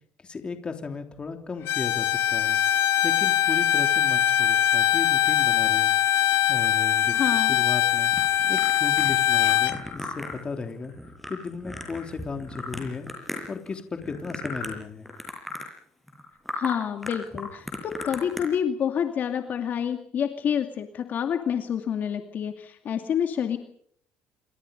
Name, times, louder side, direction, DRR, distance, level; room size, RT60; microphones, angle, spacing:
voice 1, 0.2-2.6 3.0-5.9 6.5-8.1 8.5-10.9 11.3-13.1 13.5-15.1, left 4 dB, 25° left, 6 dB, 3.2 m, -35 dB
Bowed string instrument, 1.7-9.8, left 11 dB, 65° left, 1.8 m, -22 dB
voice 2, 7.1-7.6 16.5-23.6, left 8 dB, 45° left, 6 dB, 2.4 m, -28 dB
sound 1, 8.1-13.7 14.0-14.8 15.1-15.7 16.1-16.2 16.5-16.7 17.0-18.4, left 2 dB, ahead, 7.4 m, -36 dB
27.5 x 26.0 x 5.4 m, 0.64 s
cardioid pair, 145°, 4 cm